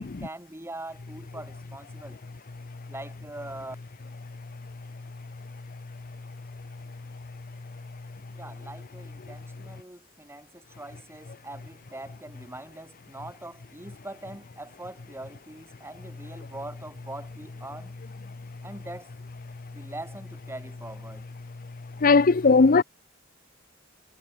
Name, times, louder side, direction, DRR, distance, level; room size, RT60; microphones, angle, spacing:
voice 1, 0.0-2.2 2.9-3.8 8.3-18.0 18.6-19.1 19.7-21.3, right 1 dB, 10° right, 4.1 m, -42 dB
voice 2, 22.0-22.8, left 4 dB, 45° left, 0.6 m, -17 dB
head